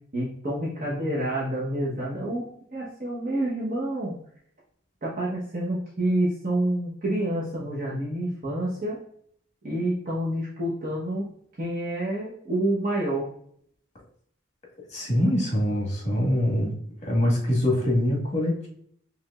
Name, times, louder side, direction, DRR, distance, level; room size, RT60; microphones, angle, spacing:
voice 1, 0.1-4.2 5.0-9.0 9.6-11.3 11.6-13.3, right 1 dB, 45° right, -6 dB, 1.0 m, -28 dB
voice 2, 14.9-16.7 17.0-18.7, left 1 dB, 35° left, -2 dB, 1.5 m, -24 dB
4.7 x 3.4 x 2.4 m, 0.64 s
head